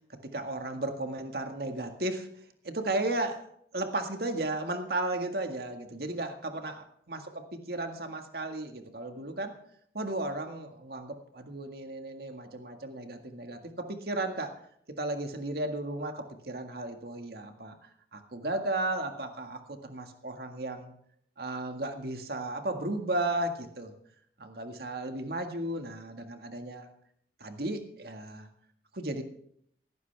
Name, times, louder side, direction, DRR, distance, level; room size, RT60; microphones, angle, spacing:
voice 1, 0.1-2.3 2.6-3.5 3.7-9.6 9.9-14.6 15.0-20.9 21.4-23.9 24.4-26.9 27.4-28.5 28.9-29.2, right 2 dB, 60° right, 5 dB, 1.9 m, -34 dB
17.5 x 16.0 x 3.5 m, 0.66 s
head